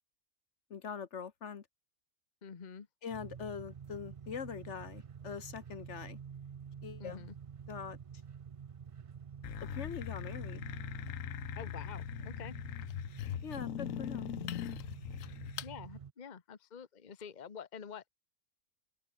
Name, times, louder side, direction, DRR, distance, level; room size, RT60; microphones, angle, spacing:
voice 1, 0.7-1.7 3.0-6.2 6.8-7.3 7.7-8.0 9.6-10.6 13.4-14.3, left 6 dB, 65° left, 1.4 m, -43 dB
voice 2, 2.4-2.9 7.0-7.3 11.6-12.6 15.6-18.1, left 7 dB, 35° left, 1.1 m, -47 dB
sound 1, 3.1-16.1, right 7 dB, 60° right, 0.3 m, -48 dB
sound 2, 9.4-15.7, left 12 dB, 85° left, 1.1 m, -41 dB
open air
omnidirectional pair, 1.3 m